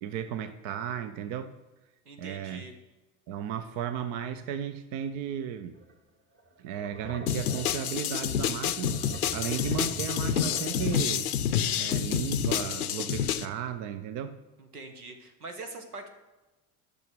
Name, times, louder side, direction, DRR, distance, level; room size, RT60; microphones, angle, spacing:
voice 1, 0.0-1.5 2.2-2.7 3.3-5.8 6.6-11.3 11.8-14.4, right 9 dB, 50° right, 10 dB, 0.7 m, -35 dB
voice 2, 2.0-2.7 14.6-16.1, right 3 dB, 85° right, 6 dB, 1.3 m, -43 dB
sound 1, 5.7-5.9 6.4-11.2, right 2 dB, 30° right, 1.6 m, -43 dB
sound 2, 7.3-13.5, left 9 dB, 80° left, 0.6 m, -28 dB
10.5 x 6.2 x 5.2 m, 1.1 s
figure-of-eight pair, 65°, 44 cm